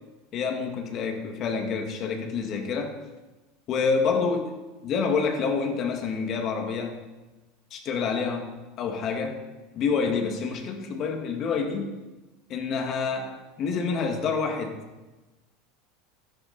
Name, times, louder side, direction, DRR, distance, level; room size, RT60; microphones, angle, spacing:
voice 1, 0.3-3.0 3.7-4.6 4.8-7.0 7.7-8.5 8.8-9.4 9.7-11.9 12.5-14.8, left 5 dB, 45° left, 4 dB, 2.0 m, -27 dB
12.5 x 10.5 x 4.1 m, 1.1 s
supercardioid pair, 105°, 0 cm